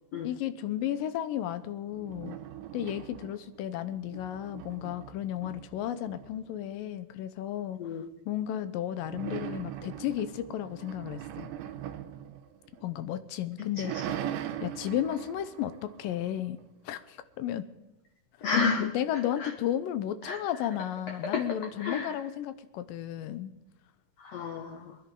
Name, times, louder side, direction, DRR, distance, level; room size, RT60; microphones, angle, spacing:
voice 1, 0.2-2.4 2.7-7.8 8.3-11.5 12.8-13.9 14.6-16.6 16.9-17.7 18.9-23.5, left 11 dB, 85° left, 12 dB, 2.4 m, -33 dB
sound 1, 1.9-3.6 3.9-6.7 9.0-13.1 13.5-16.6, right 10 dB, 80° right, 2.4 m, -40 dB
voice 2, 18.4-18.9 19.4-19.5 20.3-20.4 21.2-21.4 21.8-22.2 24.2-25.0, left 5 dB, 65° left, 3 dB, 1.8 m, -31 dB
23.0 x 10.5 x 3.8 m, 0.97 s
omnidirectional pair, 3.9 m